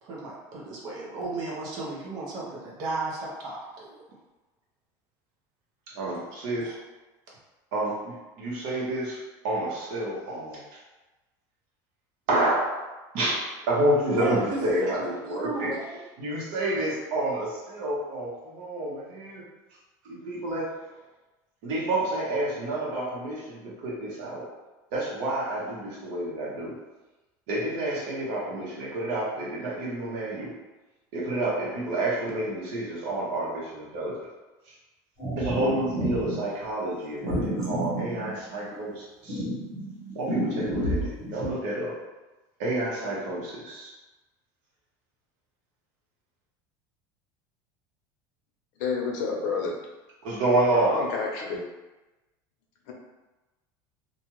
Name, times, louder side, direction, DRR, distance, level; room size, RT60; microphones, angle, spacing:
voice 1, 0.0-3.9 6.6-6.8 14.2-14.6 15.2-15.9, right 3 dB, 45° right, -4 dB, 0.7 m, -34 dB
voice 2, 5.9-6.7 7.7-10.6 12.3-12.9 13.1-15.7 16.2-19.4 20.0-20.7 21.6-24.5 24.9-26.8 27.5-30.6 31.1-34.1 34.6-34.7 35.4-39.4 40.1-41.9 42.6-43.9 50.2-51.0, right 1 dB, 60° right, -6 dB, 1.0 m, -29 dB
sound 1, 35.2-36.4 37.2-38.8 39.3-41.5, right 1 dB, 5° left, 1.0 m, -30 dB
voice 3, 48.8-49.7 50.7-51.6 52.9-53.0, left 4 dB, 75° left, 0 dB, 0.7 m, -29 dB
2.5 x 2.3 x 3.0 m, 1.1 s
cardioid pair, 160°, 10 cm